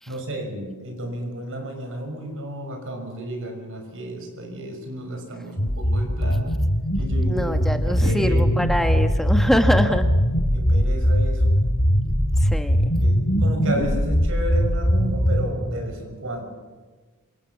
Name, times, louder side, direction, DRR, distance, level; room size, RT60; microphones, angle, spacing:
voice 1, 0.1-6.5 7.0-8.4 10.5-11.6 13.0-16.4, right 1 dB, 60° right, 4 dB, 6.0 m, -32 dB
sound 1, 5.6-15.5, equal, 50° left, 4.8 m, -21 dB
voice 2, 7.3-10.1 12.4-12.9, equal, ahead, 6 dB, 1.1 m, -24 dB
27.0 x 26.5 x 7.2 m, 1.4 s
head